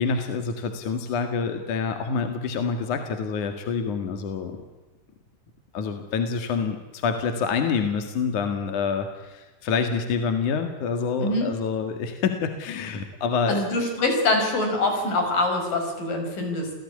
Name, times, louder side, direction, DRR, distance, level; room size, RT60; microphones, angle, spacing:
voice 1, 0.0-4.6 5.7-13.6, left 5 dB, 65° left, 6 dB, 3.3 m, -27 dB
voice 2, 11.2-11.5 13.5-16.7, left 2 dB, 85° left, 4 dB, 7.3 m, -24 dB
28.0 x 18.0 x 9.8 m, 1.2 s
omnidirectional pair, 3.8 m